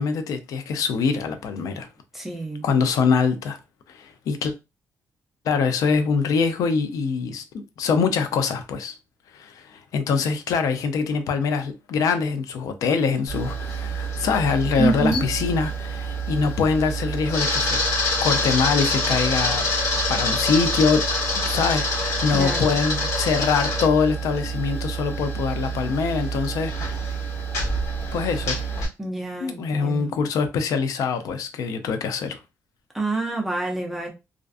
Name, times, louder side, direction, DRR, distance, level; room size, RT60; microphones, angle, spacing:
voice 1, 0.0-1.9 2.6-3.6 3.9-4.5 5.5-8.9 9.3-17.8 18.2-19.7 20.1-21.0 21.5-27.0 28.1-28.6 29.4-32.4, left 5 dB, 75° left, 0.4 m, -24 dB
voice 2, 2.1-2.6 14.8-15.3 22.3-22.7 29.0-30.1 32.9-34.1, right 3 dB, 5° right, 0.4 m, -27 dB
Camera, 13.3-28.9, equal, 60° left, 1.0 m, -26 dB
2.4 x 2.3 x 2.3 m
wide cardioid pair, 180°, 6 cm